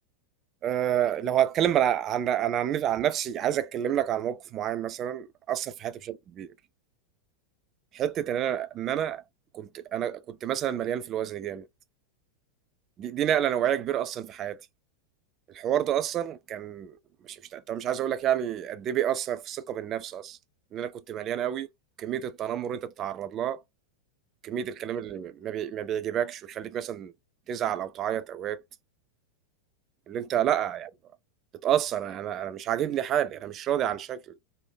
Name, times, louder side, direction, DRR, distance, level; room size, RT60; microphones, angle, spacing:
voice 1, 0.6-6.1 6.4-6.5 7.9-9.2 9.5-11.6 13.0-14.6 15.5-17.0 17.2-20.4 20.7-21.7 22.0-23.6 24.4-27.1 27.5-28.6 30.1-30.9 31.6-34.3, right 10 dB, 30° right, 0.3 m, -29 dB
3.2 x 2.0 x 2.2 m
figure-of-eight pair, 90°, 0 cm